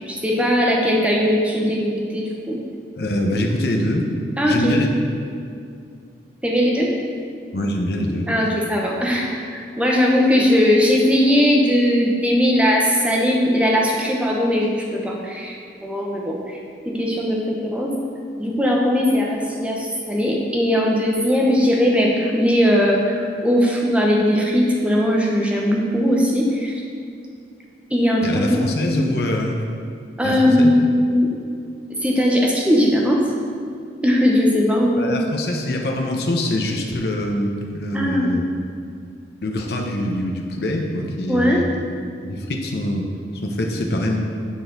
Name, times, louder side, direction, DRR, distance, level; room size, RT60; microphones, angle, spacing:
voice 1, 0.1-2.6 4.4-4.8 6.4-6.9 8.3-16.6 16.9-17.9 18.4-26.8 27.9-29.0 30.2-31.3 32.0-33.2 34.0-35.3 37.9-38.3 41.3-41.6, equal, 5° right, -2 dB, 0.8 m, -19 dB
voice 2, 3.0-4.1 4.5-4.9 7.5-8.4 28.2-29.6 30.2-30.7 35.0-38.5 39.4-41.8 42.2-43.1 43.4-44.2, left 1 dB, 60° left, 1 dB, 0.7 m, -24 dB
9.3 x 4.1 x 3.9 m, 2.3 s
head